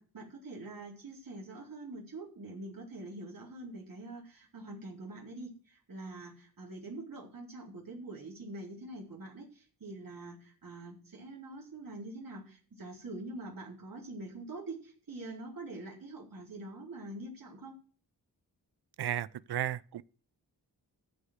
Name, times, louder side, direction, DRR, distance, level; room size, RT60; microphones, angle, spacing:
voice 1, 0.0-17.8, right 2 dB, 55° right, 4.1 m, -45 dB
voice 2, 19.0-20.0, right 11 dB, 70° right, 0.6 m, -34 dB
14.5 x 5.0 x 6.5 m
wide cardioid pair, 85°, 40 cm